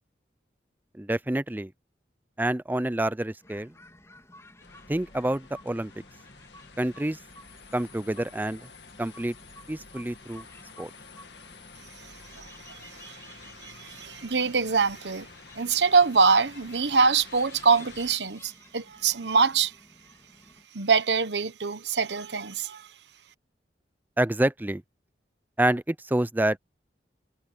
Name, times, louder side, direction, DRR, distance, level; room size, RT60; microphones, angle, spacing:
voice 1, 0.9-1.7 2.4-3.8 4.9-5.9 6.8-7.2 7.7-8.7 9.0-9.3 9.7-10.5 10.8-10.9 24.2-24.8 25.6-26.6, right 1 dB, 10° right, 0.5 m, -27 dB
sound 1, 3.4-20.7, left 2 dB, 15° left, 3.0 m, -53 dB
sound 2, 4.6-18.2, left 4 dB, 70° left, 2.1 m, -50 dB
voice 2, 12.3-15.3 15.5-19.7 20.7-22.9, right 5 dB, 75° right, 1.1 m, -24 dB
head